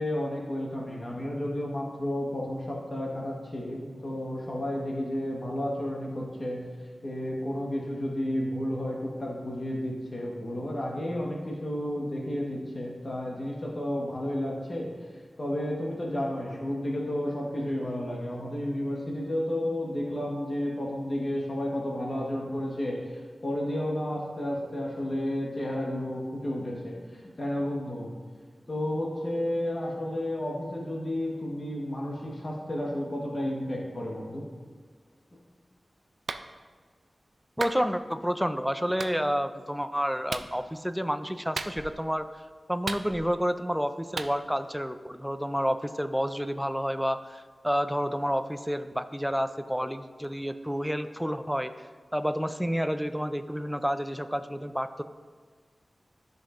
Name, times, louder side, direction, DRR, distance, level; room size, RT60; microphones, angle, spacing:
voice 1, 0.0-6.6 7.0-14.9 15.4-28.1 28.7-34.4, left 1 dB, 40° left, -2 dB, 1.2 m, -32 dB
Clapping, 36.3-36.5 37.6-37.8 39.0-39.1 40.3-40.5 41.6-42.0 42.9-43.4 44.2-44.3, right 4 dB, 75° right, 0.3 m, -35 dB
voice 2, 37.6-42.3 42.7-51.7 52.1-55.0, equal, ahead, 9 dB, 0.3 m, -29 dB
12.5 x 5.3 x 2.5 m, 1.5 s
wide cardioid pair, 100°, 0 cm